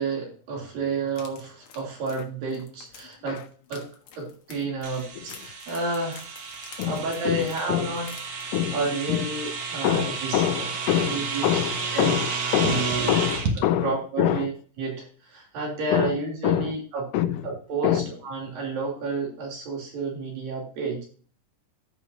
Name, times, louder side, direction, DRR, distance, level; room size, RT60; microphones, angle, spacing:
voice 1, 0.0-3.4 3.7-3.9 4.1-6.2 6.8-10.6 11.0-11.4 11.9-12.2 13.8-14.5 14.8-17.0 17.4-21.0, right 3 dB, 85° right, 4.7 m, -31 dB
sound 1, 1.1-8.9 9.2-9.4 9.8-9.9, left 6 dB, 55° left, 2.0 m, -48 dB
sound 2, 4.8-13.6, right 5 dB, 50° right, 2.0 m, -31 dB
voice 2, 6.8-8.0 8.5-8.8 9.1-9.3 9.8-14.5 15.9-16.7 17.1-17.5 17.8-18.1, left 12 dB, 80° left, 2.1 m, -26 dB
15.5 x 5.4 x 2.7 m
omnidirectional pair, 3.9 m